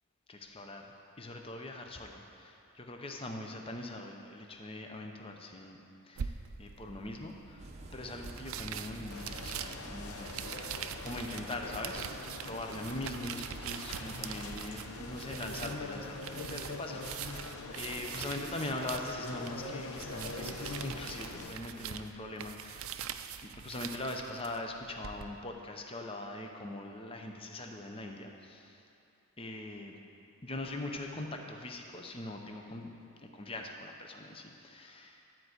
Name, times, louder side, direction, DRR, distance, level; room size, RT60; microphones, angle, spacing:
voice 1, 0.3-5.8 6.1-7.7 7.9-10.4 11.0-22.9 23.4-28.8 29.4-30.0 30.4-32.9 33.2-35.2, left 2 dB, 25° left, 3 dB, 0.7 m, -42 dB
sound 1, 6.2-25.3, right 8 dB, 65° right, 0.4 m, -44 dB
sound 2, 7.6-15.8, right 1 dB, 30° right, 0.7 m, -50 dB
sound 3, 9.1-21.5, left 3 dB, 75° left, 0.8 m, -43 dB
12.0 x 4.6 x 8.0 m, 2.6 s
head